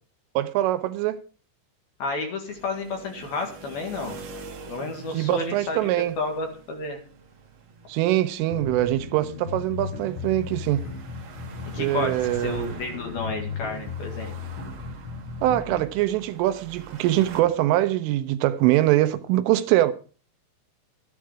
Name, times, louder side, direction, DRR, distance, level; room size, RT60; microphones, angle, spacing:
voice 1, 0.4-1.2 5.1-6.2 7.9-10.8 11.8-12.6 15.4-19.9, right 15 dB, 85° right, 3.2 m, -23 dB
voice 2, 2.0-4.2 4.7-5.8 6.2-7.0 11.7-14.3, left 3 dB, 60° left, 3.3 m, -31 dB
sound 1, 2.5-17.4, right 4 dB, 65° right, 1.6 m, -45 dB
sound 2, 8.5-15.9, left 5 dB, 75° left, 4.9 m, -35 dB
13.0 x 10.5 x 4.9 m
omnidirectional pair, 5.8 m